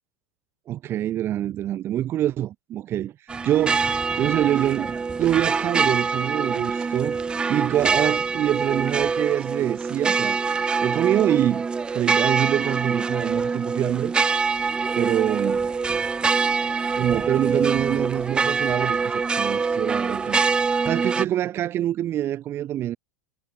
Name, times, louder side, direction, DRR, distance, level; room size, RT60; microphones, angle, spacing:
voice 1, 0.7-3.1 3.4-3.9 4.1-7.2 7.5-10.4 10.8-11.6 11.9-14.1 14.9-15.7 16.9-20.4 20.8-23.0, right 12 dB, 25° right, 2.9 m, -25 dB
sound 1, 3.3-21.3, right 5 dB, 10° right, 0.6 m, -24 dB
supercardioid pair, 160°, 9 cm